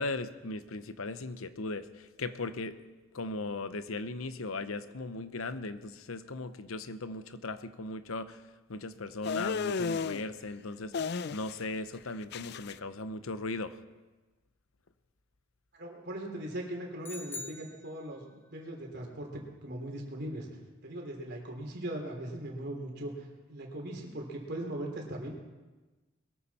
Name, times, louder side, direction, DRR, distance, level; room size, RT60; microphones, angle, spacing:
voice 1, 0.0-2.8 3.1-8.4 8.7-13.8, left 2 dB, 85° left, 11 dB, 0.9 m, -38 dB
sound 1, 9.2-10.2 10.9-11.7 11.9-12.7, left 5 dB, 50° left, 0.4 m, -33 dB
voice 2, 15.7-20.5 20.8-25.3, right 1 dB, 55° right, 1 dB, 3.3 m, -39 dB
sound 2, 17.0-18.5, left 3 dB, 10° left, 1.2 m, -44 dB
21.0 x 14.0 x 4.3 m, 1.2 s
head